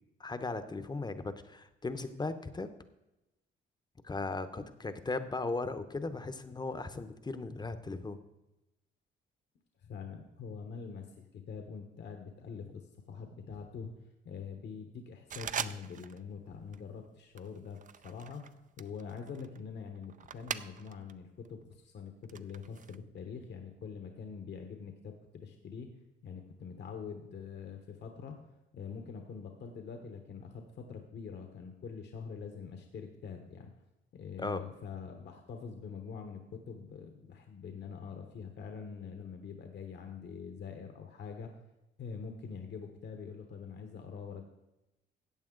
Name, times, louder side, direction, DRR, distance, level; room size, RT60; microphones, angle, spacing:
voice 1, 0.2-2.7 4.0-8.2 34.4-34.6, left 3 dB, 20° left, 11 dB, 0.8 m, -37 dB
voice 2, 9.8-13.9 14.2-25.9 26.2-28.4 28.7-33.7 34.1-41.5 42.0-44.4, left 6 dB, 60° left, 5 dB, 1.1 m, -44 dB
sound 1, 15.3-16.2 16.5-16.9 17.4-21.1 21.5-23.0, right 8 dB, 40° right, 0.4 m, -42 dB
14.0 x 8.4 x 3.8 m, 0.95 s
cardioid pair, 90°, 20 cm